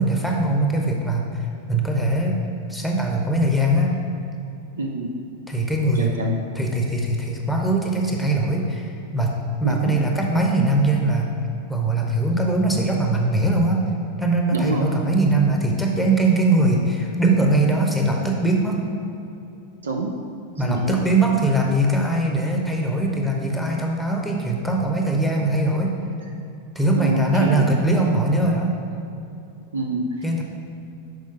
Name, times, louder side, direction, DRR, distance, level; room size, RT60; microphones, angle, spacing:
voice 1, 0.0-2.4 2.7-3.9 5.5-6.1 6.5-11.3 11.7-13.8 14.2-18.8 20.6-25.9 26.7-28.7 30.2-30.4, right 2 dB, ahead, 0 dB, 1.0 m, -21 dB
voice 2, 4.8-5.1 6.0-6.4 9.6-9.9 14.5-15.0 19.8-20.1 20.6-21.0 27.0-27.7 29.7-30.1, right 3 dB, 70° right, 1 dB, 0.6 m, -27 dB
6.0 x 5.1 x 5.8 m, 2.6 s
figure-of-eight pair, 90°, 0 cm